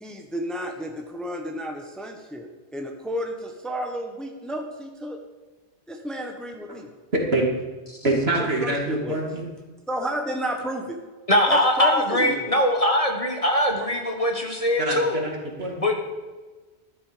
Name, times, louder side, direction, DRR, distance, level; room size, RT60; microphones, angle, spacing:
voice 1, 0.0-2.5 2.7-5.2 5.9-6.9 8.4-9.2 9.9-11.0 11.5-12.5, equal, ahead, 3 dB, 1.2 m, -31 dB
voice 2, 7.1-7.5 8.0-9.4 14.8-15.9, right 2 dB, 65° right, 0 dB, 2.7 m, -25 dB
voice 3, 11.3-15.2 15.8-15.9, left 1 dB, 30° left, 2 dB, 1.4 m, -21 dB
13.5 x 11.5 x 5.1 m, 1.3 s
omnidirectional pair, 1.1 m